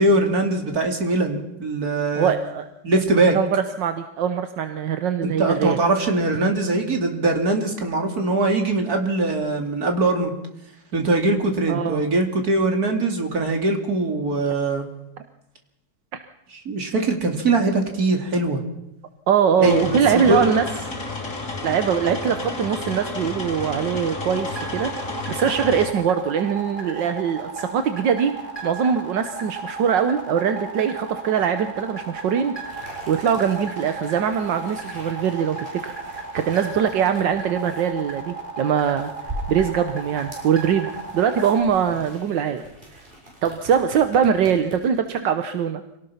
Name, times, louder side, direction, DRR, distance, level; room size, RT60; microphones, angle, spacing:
voice 1, 0.0-2.3 2.8-3.4 5.2-10.3 10.9-14.8 16.6-18.6 19.6-20.5, right 2 dB, 55° right, 4 dB, 3.2 m, -21 dB
voice 2, 2.2-2.7 3.3-5.8 11.7-12.0 16.1-16.2 19.3-20.6 21.6-24.9 25.3-28.3 28.6-39.1 39.5-42.6 43.4-45.8, right 7 dB, 80° right, 8 dB, 1.7 m, -22 dB
sound 1, 19.6-25.9, left 3 dB, 45° left, 3.4 m, -31 dB
sound 2, 24.4-41.6, right 4 dB, 25° left, 4.4 m, -34 dB
sound 3, 32.6-45.0, right 1 dB, 30° right, 7.1 m, -41 dB
26.0 x 18.0 x 5.8 m, 0.84 s
omnidirectional pair, 1.9 m